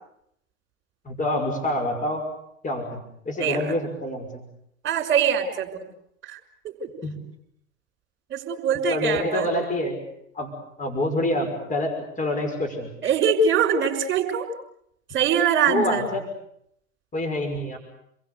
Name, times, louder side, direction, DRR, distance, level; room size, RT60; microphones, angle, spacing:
voice 1, 1.0-2.3 2.6-3.0 3.3-4.4 7.0-7.2 8.9-10.0 10.3-10.5 10.8-12.9 15.7-16.2 17.1-17.8, left 1 dB, 20° left, 5 dB, 5.9 m, -26 dB
voice 2, 4.8-5.8 6.2-6.4 6.6-6.9 8.3-9.5 13.0-14.5 15.1-16.1, right 6 dB, 30° right, 5 dB, 6.1 m, -23 dB
29.5 x 22.5 x 8.3 m, 0.75 s
hypercardioid pair, 100°, 41 cm